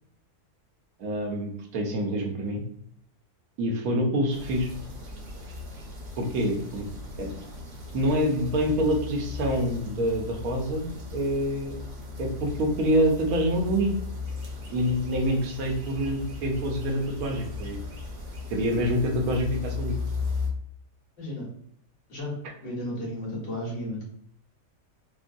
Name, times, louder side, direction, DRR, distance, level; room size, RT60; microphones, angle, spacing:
voice 1, 1.0-2.6 3.6-4.7 6.2-6.9 7.2-7.3 7.9-11.8 12.2-13.9 14.7-17.8 18.5-20.0, equal, 80° right, 1 dB, 1.2 m, -26 dB
sound 1, 4.3-20.5, left 3 dB, 55° right, 0.9 m, -37 dB
voice 2, 21.2-21.5 22.1-22.3 22.6-24.0, left 1 dB, 55° left, -5 dB, 1.7 m, -33 dB
3.7 x 2.1 x 2.5 m, 0.67 s
omnidirectional pair, 1.5 m